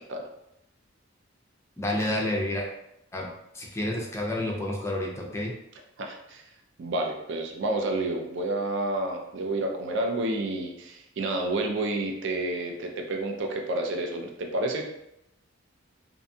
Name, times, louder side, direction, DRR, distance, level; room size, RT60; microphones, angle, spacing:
voice 1, 1.8-2.7 3.1-3.3 3.5-5.5, left 1 dB, 15° left, -2 dB, 0.4 m, -29 dB
voice 2, 6.0-6.4 6.8-14.9, right 2 dB, 60° right, 2 dB, 0.4 m, -30 dB
2.6 x 2.2 x 2.6 m, 0.81 s
head